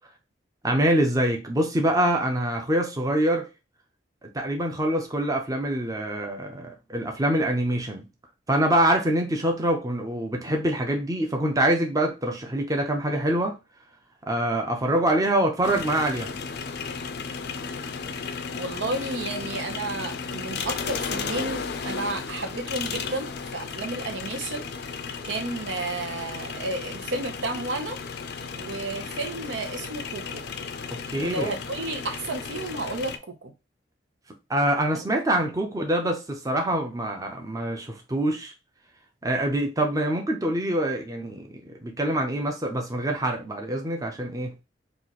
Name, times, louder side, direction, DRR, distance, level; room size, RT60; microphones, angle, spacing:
voice 1, 0.6-3.5 4.2-8.1 8.5-13.6 14.2-16.4 30.9-31.6 34.5-38.5 39.2-44.6, right 1 dB, 20° right, 0.6 m, -25 dB
sound 1, 15.6-33.2, left 5 dB, 60° left, 0.4 m, -34 dB
voice 2, 18.5-25.0 25.2-28.0 28.6-30.4 31.2-33.2 33.4-33.5, right 2 dB, 85° right, 0.8 m, -32 dB
3.1 x 2.5 x 3.9 m
head